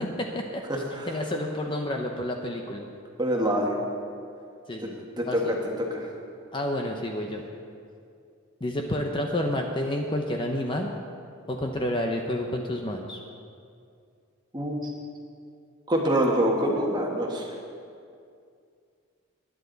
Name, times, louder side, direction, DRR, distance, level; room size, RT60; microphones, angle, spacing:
voice 1, 0.0-2.9 4.7-5.5 6.5-7.4 8.6-10.9 11.5-13.2, left 1 dB, 20° left, 2 dB, 0.7 m, -30 dB
voice 2, 0.7-1.1 3.2-3.8 4.8-4.9 5.2-6.1 14.5-14.9 15.9-17.5, equal, 20° right, 0 dB, 1.5 m, -26 dB
20.5 x 10.0 x 4.0 m, 2.4 s
head